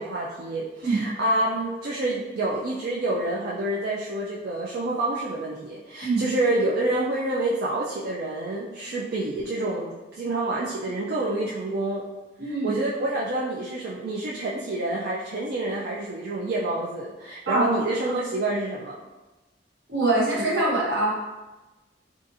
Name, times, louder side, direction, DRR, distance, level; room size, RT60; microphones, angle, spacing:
voice 1, 0.0-12.0 12.6-19.0, right 2 dB, 60° right, -5 dB, 0.4 m, -28 dB
voice 2, 12.4-12.7 17.5-17.7 19.9-21.1, right 2 dB, 80° right, -5 dB, 1.0 m, -23 dB
3.7 x 2.5 x 2.6 m, 1.1 s
head